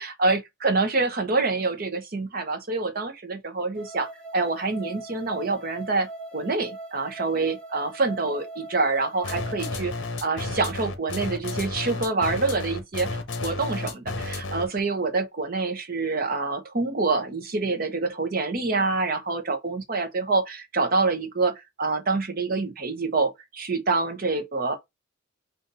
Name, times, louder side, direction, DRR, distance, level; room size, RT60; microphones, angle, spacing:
voice 1, 0.2-9.9 10.2-24.8, right 3 dB, 45° right, 0.8 m, -26 dB
sound 1, 3.7-9.7, right 2 dB, 80° right, 1.2 m, -41 dB
sound 2, 9.2-14.8, left 2 dB, 65° left, 0.9 m, -32 dB
4.0 x 2.5 x 3.9 m
head